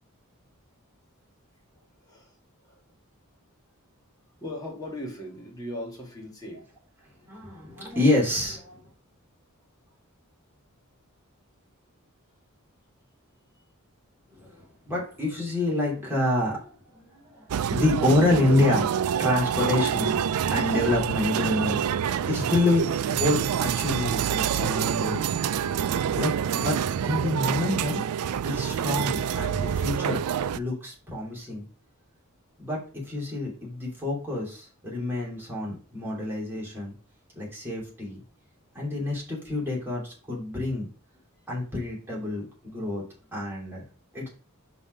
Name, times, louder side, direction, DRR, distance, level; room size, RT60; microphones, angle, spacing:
voice 1, 1.7-2.8 4.4-6.7, left 1 dB, 15° left, 2.5 m, -39 dB
voice 2, 7.3-8.8 14.3-20.2 20.5-25.4 25.7-26.8 27.0-28.0 28.4-30.2 30.5-31.7 32.6-36.9 37.3-38.2 38.7-40.9 41.5-43.0 43.3-43.8 44.1-44.3, left 2 dB, 10° right, 3.0 m, -28 dB
sound 1, 17.5-30.6, right 8 dB, 90° right, 0.4 m, -27 dB
5.5 x 4.3 x 5.1 m
head